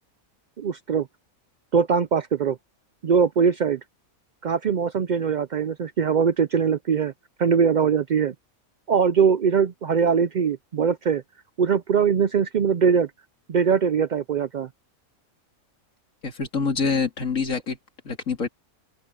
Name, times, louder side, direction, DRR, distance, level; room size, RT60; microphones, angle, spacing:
voice 1, 0.6-1.1 1.7-2.6 3.0-3.8 4.4-7.1 7.4-8.3 8.9-11.2 11.6-13.1 13.5-14.7, right 6 dB, 85° right, 0.4 m, -21 dB
voice 2, 16.2-17.8 18.0-18.5, left 5 dB, 65° left, 2.9 m, -25 dB
open air
omnidirectional pair, 1.5 m